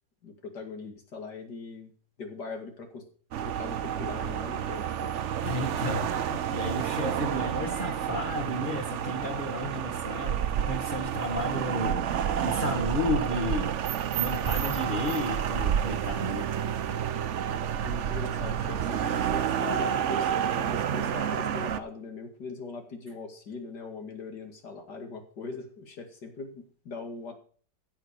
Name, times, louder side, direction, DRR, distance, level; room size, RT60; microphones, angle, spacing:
voice 1, 0.2-1.9 2.2-3.0 3.4-5.1 7.3-7.5 16.9-17.0 17.8-27.3, left 4 dB, 60° left, 5 dB, 2.8 m, -40 dB
sound 1, 3.3-21.8, right 9 dB, 65° right, 0.7 m, -29 dB
voice 2, 5.4-10.4 10.7-12.1 12.4-13.7 14.2-16.5, left 1 dB, 25° left, 0 dB, 1.9 m, -32 dB
15.5 x 6.2 x 6.4 m, 0.43 s
omnidirectional pair, 2.0 m